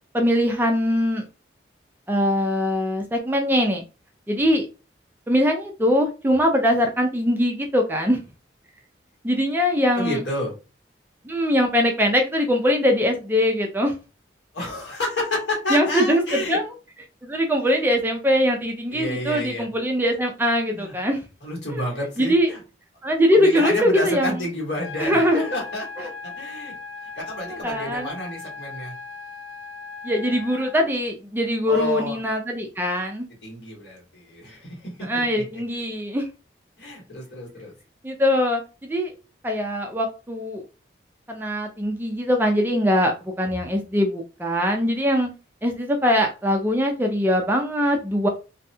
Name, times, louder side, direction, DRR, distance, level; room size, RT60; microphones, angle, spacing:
voice 1, 0.1-1.2 2.1-3.8 4.3-4.7 5.3-8.2 9.2-10.2 11.2-13.9 15.7-16.7 17.2-21.2 21.7-21.8 22.2-22.5 23.0-24.4 25.0-25.5 26.0-26.1 27.5-28.1 30.0-33.3 35.0-36.3 38.0-39.1 39.4-40.6 41.3-45.3 45.6-48.3, equal, 10° right, 3 dB, 0.3 m, -22 dB
voice 2, 9.9-10.5 14.5-16.6 18.9-19.7 20.7-20.9 21.4-22.6 23.3-26.7 27.2-28.9 31.7-32.2 33.4-34.8 35.1-35.4 36.8-37.7, left 1 dB, 70° left, -2 dB, 1.5 m, -29 dB
sound 1, 24.8-30.8, left 4 dB, 85° left, 0.4 m, -38 dB
2.6 x 2.2 x 2.6 m, 0.31 s
head